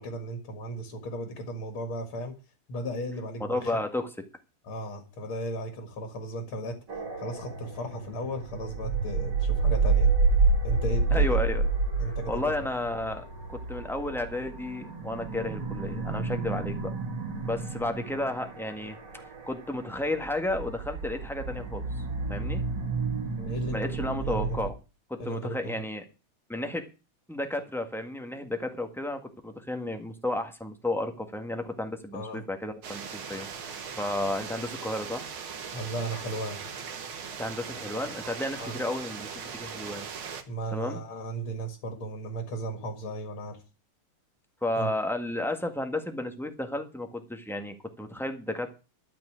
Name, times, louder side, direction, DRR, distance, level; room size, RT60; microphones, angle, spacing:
voice 1, 0.0-2.3 2.7-3.8 4.6-6.8 7.2-10.1 10.6-11.4 12.0-12.6 23.3-23.8 24.3-24.6 25.2-25.8 32.1-32.4 35.7-36.6 38.6-38.8 40.5-43.6 44.8-44.9, right 1 dB, 70° left, 6 dB, 2.7 m, -35 dB
voice 2, 3.4-4.1 11.1-11.7 12.0-16.9 17.4-22.0 22.3-22.6 23.7-24.7 25.1-26.0 26.5-26.8 27.3-35.3 37.4-39.3 39.6-40.1 40.7-41.0 44.6-48.7, left 1 dB, ahead, 5 dB, 1.4 m, -32 dB
sound 1, 6.9-24.7, right 4 dB, 50° right, 2.5 m, -29 dB
sound 2, 32.8-40.4, right 6 dB, 70° right, 2.3 m, -39 dB
12.5 x 6.0 x 8.7 m, 0.32 s
omnidirectional pair, 2.4 m